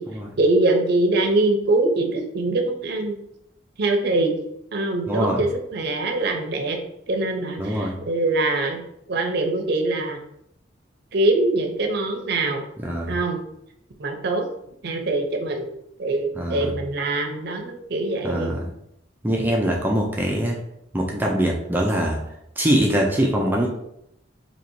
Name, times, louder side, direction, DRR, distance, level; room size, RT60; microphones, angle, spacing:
voice 1, 0.4-3.2 3.8-4.4 4.7-6.8 7.1-8.8 9.1-10.2 11.1-12.7 13.1-13.4 14.0-14.4 14.8-15.7 16.0-18.5, right 2 dB, 60° right, 3 dB, 0.6 m, -23 dB
voice 2, 5.1-5.4 7.6-8.0 12.8-13.2 16.4-16.7 18.2-18.6 19.2-20.6 20.9-22.2 22.6-23.7, equal, 10° right, -1 dB, 0.4 m, -23 dB
2.8 x 2.7 x 4.4 m, 0.77 s
head